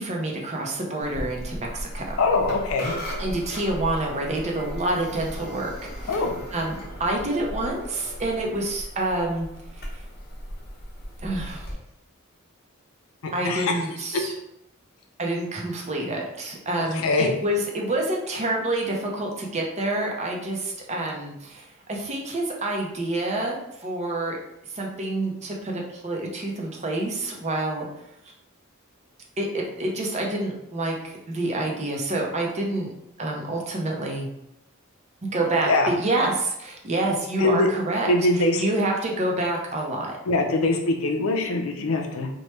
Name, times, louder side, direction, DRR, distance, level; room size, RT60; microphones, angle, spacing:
voice 1, 0.0-2.2 3.2-5.7 6.0-6.2 6.5-9.5 11.2-11.7 13.3-14.3 15.2-24.4 24.7-27.9 29.4-32.9 33.2-34.3 35.3-38.1 38.6-40.2, right 2 dB, 35° right, 0 dB, 0.5 m, -27 dB
sound 1, 1.0-11.7, equal, 50° left, 0.8 m, -37 dB
voice 2, 2.2-2.9 6.1-6.4 13.2-13.8 16.8-17.3 35.7-35.9 37.4-37.7 38.1-38.6 40.3-42.3, left 2 dB, 85° left, 3 dB, 0.5 m, -23 dB
2.9 x 2.1 x 3.1 m, 0.82 s
head